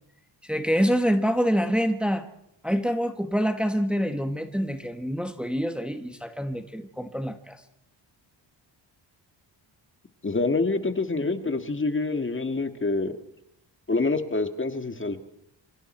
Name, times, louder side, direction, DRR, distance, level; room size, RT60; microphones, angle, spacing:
voice 1, 0.4-2.2 2.6-7.6, equal, ahead, 7 dB, 1.6 m, -26 dB
voice 2, 10.2-13.1 13.9-15.2, left 3 dB, 25° left, 8 dB, 1.9 m, -26 dB
28.0 x 25.5 x 4.5 m, 0.76 s
cardioid pair, 100°, 44 cm